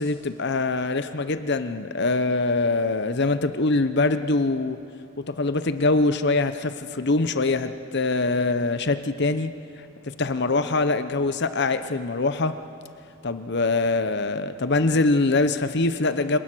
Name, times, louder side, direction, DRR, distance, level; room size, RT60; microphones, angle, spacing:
voice 1, 0.0-4.8 5.3-9.5 10.0-12.6 13.2-16.4, left 3 dB, 55° left, 11 dB, 0.9 m, -23 dB
27.5 x 19.0 x 6.3 m, 2.5 s
head